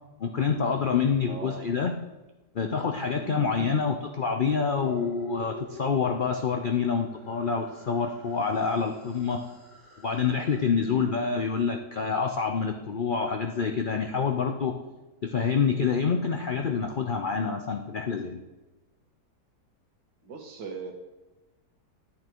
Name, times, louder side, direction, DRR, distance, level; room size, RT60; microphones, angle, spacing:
voice 1, 0.2-1.9 2.5-9.4 10.0-14.8 15.2-18.4, left 5 dB, 80° left, 4 dB, 0.4 m, -27 dB
voice 2, 1.3-1.7 3.2-3.9 10.8-11.2 20.2-20.9, right 4 dB, 85° right, 4 dB, 2.0 m, -39 dB
sound 1, 4.7-10.7, left 2 dB, 55° left, 4.1 m, -44 dB
10.5 x 8.6 x 4.5 m, 1.1 s
omnidirectional pair, 1.8 m